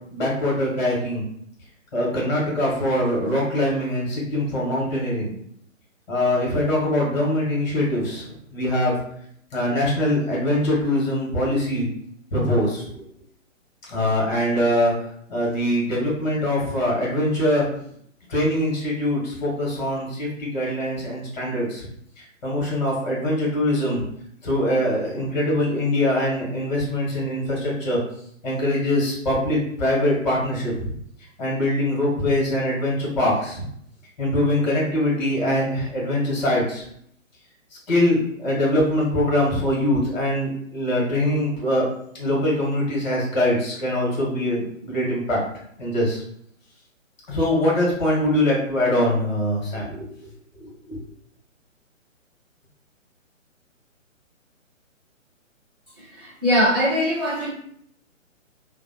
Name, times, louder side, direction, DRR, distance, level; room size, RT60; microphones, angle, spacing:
voice 1, 0.1-1.2 1.9-5.3 6.1-8.9 9.5-11.9 12.3-13.0 13.9-17.6 18.3-21.9 22.2-24.0 24.4-28.0 28.4-30.9 31.4-33.6 34.2-36.8 37.9-41.8 42.1-45.4 45.8-46.2 47.3-50.1 50.5-51.0, left 1 dB, 35° left, -4 dB, 1.2 m, -23 dB
voice 2, 56.0-57.5, equal, 20° right, -13 dB, 0.4 m, -22 dB
2.8 x 2.0 x 2.7 m, 0.68 s
figure-of-eight pair, 135°, 39 cm